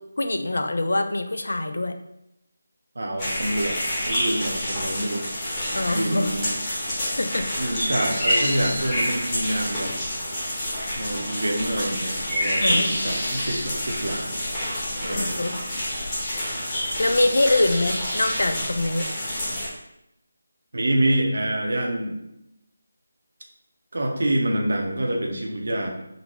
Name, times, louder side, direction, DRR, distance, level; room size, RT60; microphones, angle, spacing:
voice 1, 0.2-2.0 5.7-6.3 7.1-7.5 7.9-8.0 12.5-12.8 13.1-13.2 15.0-15.5 17.0-19.1, left 2 dB, 70° left, 7 dB, 0.3 m, -24 dB
voice 2, 2.9-3.8 4.1-5.3 5.8-6.6 7.6-9.9 11.0-14.4 15.0-15.4 16.0-16.1 20.7-22.2 23.9-25.9, right 1 dB, 65° right, 2 dB, 0.7 m, -26 dB
sound 1, 3.2-19.7, left 1 dB, 20° left, 1.0 m, -28 dB
3.8 x 2.2 x 2.9 m, 0.83 s
figure-of-eight pair, 160°, 0 cm